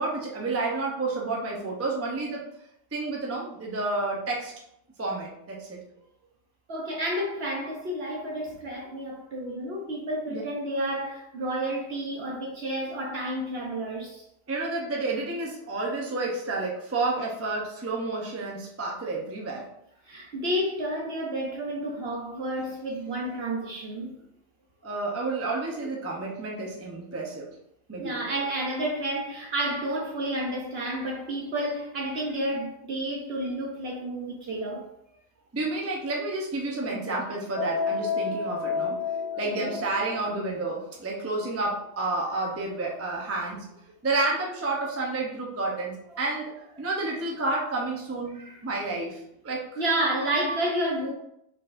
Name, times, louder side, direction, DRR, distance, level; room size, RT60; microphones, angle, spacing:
voice 1, 0.0-2.4 2.9-4.5 5.0-5.8 10.3-10.4 14.5-19.7 24.8-27.5 27.9-28.2 35.5-39.0 39.4-43.7 44.0-49.8, right 2 dB, 20° right, 0.4 m, -30 dB
voice 2, 6.7-14.2 20.1-24.2 28.0-34.9 39.6-39.8 48.3-48.6 49.8-51.1, right 1 dB, 55° right, 0.8 m, -30 dB
sound 1, 37.6-40.4, left 5 dB, 55° left, 1.2 m, -30 dB
4.6 x 4.0 x 2.5 m
omnidirectional pair, 1.6 m